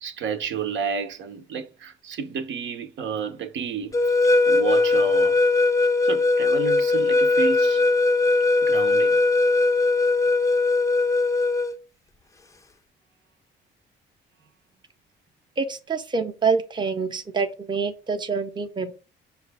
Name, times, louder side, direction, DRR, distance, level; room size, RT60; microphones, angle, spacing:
voice 1, 0.0-4.0 4.5-5.4 6.0-7.8 8.6-9.2, right 6 dB, 75° right, 0.8 m, -31 dB
sound 1, 3.9-11.7, left 3 dB, 15° left, 0.4 m, -20 dB
voice 2, 15.6-18.9, right 5 dB, 25° right, 0.6 m, -26 dB
5.7 x 2.3 x 3.3 m
cardioid pair, 90°, 20 cm